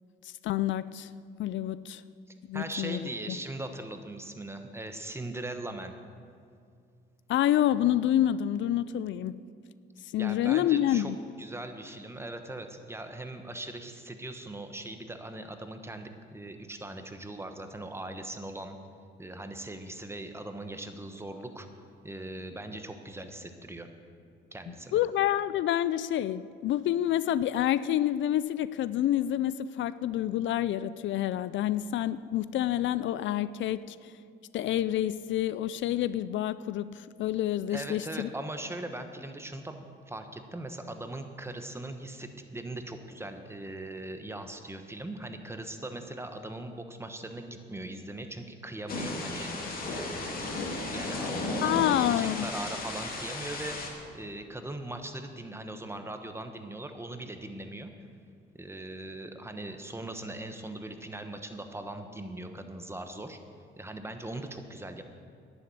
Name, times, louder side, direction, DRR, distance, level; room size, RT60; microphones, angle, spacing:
voice 1, 0.2-1.1 1.4-2.0 2.5-3.0 3.3-3.4 7.3-9.4 10.1-11.2 24.9-34.1 34.5-38.3 51.6-52.5, left 12 dB, 70° left, 16 dB, 0.4 m, -28 dB
voice 2, 2.5-5.9 10.2-11.1 11.4-18.8 19.2-21.7 22.0-23.9 24.5-25.0 37.7-49.5 49.8-57.9 58.5-63.4 63.8-65.0, right 1 dB, 10° right, 7 dB, 1.1 m, -40 dB
Thunder / Rain, 48.9-53.9, left 2 dB, 45° left, 2.4 m, -34 dB
11.0 x 7.1 x 9.3 m, 2.3 s
cardioid pair, 90°, 20 cm